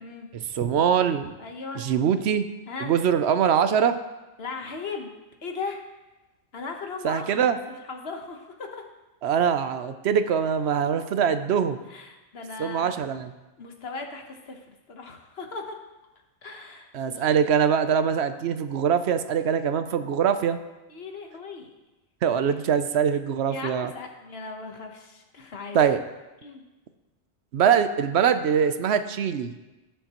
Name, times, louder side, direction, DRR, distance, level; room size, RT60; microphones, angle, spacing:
voice 1, 0.3-1.3 1.7-2.5 2.8-4.0 7.0-7.6 9.2-11.8 12.6-13.3 16.9-20.6 22.2-23.9 25.7-26.0 27.5-29.5, right 8 dB, 75° right, 10 dB, 0.9 m, -23 dB
voice 2, 1.4-1.9 2.7-2.9 4.4-5.1 5.4-5.8 6.5-7.6 7.9-8.8 11.9-13.0 13.6-15.8 16.4-17.4 20.9-21.7 22.4-22.6 23.5-25.8 26.4-26.6, left 4 dB, 65° left, 3 dB, 1.3 m, -37 dB
16.5 x 6.8 x 3.0 m, 1.1 s
omnidirectional pair, 1.1 m